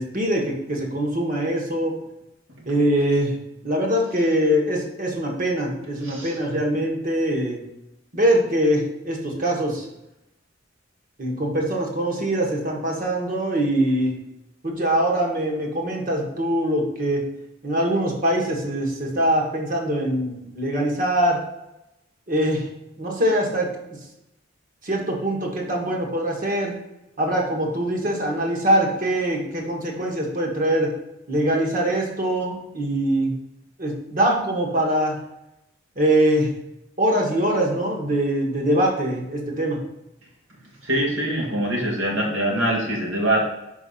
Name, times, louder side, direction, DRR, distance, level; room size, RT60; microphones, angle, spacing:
voice 1, 0.0-1.9 2.6-3.4 3.6-7.6 8.1-9.9 11.2-14.2 14.6-17.2 17.6-21.4 22.3-22.7 23.0-23.7 24.8-26.7 27.2-30.9 31.3-33.3 33.8-35.2 35.9-36.5 37.0-39.8, right 1 dB, 45° right, 0 dB, 1.6 m, -23 dB
voice 2, 6.0-6.4 40.8-43.5, right 1 dB, 85° right, -2 dB, 2.1 m, -23 dB
5.3 x 4.7 x 5.7 m, 0.89 s
head